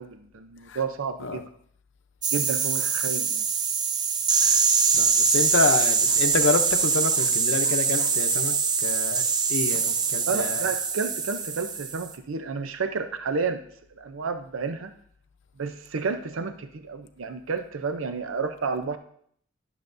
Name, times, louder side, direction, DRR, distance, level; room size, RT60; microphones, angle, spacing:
voice 1, 0.0-1.5 2.3-3.4 9.9-10.0 10.3-13.6 14.0-14.9 15.6-19.0, right 4 dB, 75° right, 0.6 m, -31 dB
sound 1, 2.2-12.1, right 5 dB, 20° right, 0.3 m, -23 dB
voice 2, 4.3-4.6 4.9-10.7, left 4 dB, 60° left, 0.7 m, -28 dB
12.0 x 7.0 x 2.6 m
head